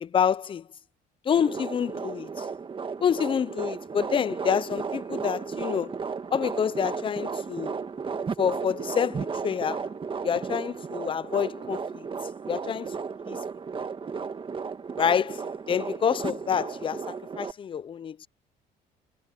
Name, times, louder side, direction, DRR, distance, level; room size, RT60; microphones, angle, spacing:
voice 1, 0.0-0.6 1.3-2.4 3.0-6.0 6.3-7.8 8.4-9.9 10.2-12.0 12.5-12.9 13.3-13.4 15.0-15.4 15.7-18.3, left 8 dB, 30° left, 0.5 m, -27 dB
sound 1, 1.4-17.5, right 5 dB, 30° right, 1.7 m, -34 dB
cardioid pair, 110°, 17 cm